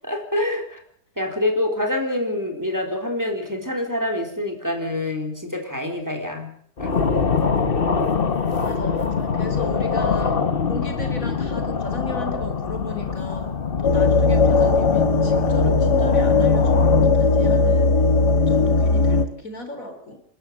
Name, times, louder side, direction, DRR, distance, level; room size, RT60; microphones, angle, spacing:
voice 1, 0.0-0.8 1.2-6.5 6.8-6.9, left 1 dB, 10° right, 3 dB, 4.0 m, -26 dB
sound 1, 6.8-17.1, left 5 dB, 35° left, 1.4 m, -24 dB
voice 2, 8.5-10.3 10.7-18.1 18.3-20.2, left 1 dB, 55° left, 7 dB, 3.6 m, -36 dB
sound 2, 13.8-19.2, left 3 dB, 85° left, 2.3 m, -18 dB
29.0 x 12.5 x 7.6 m, 0.65 s
omnidirectional pair, 1.7 m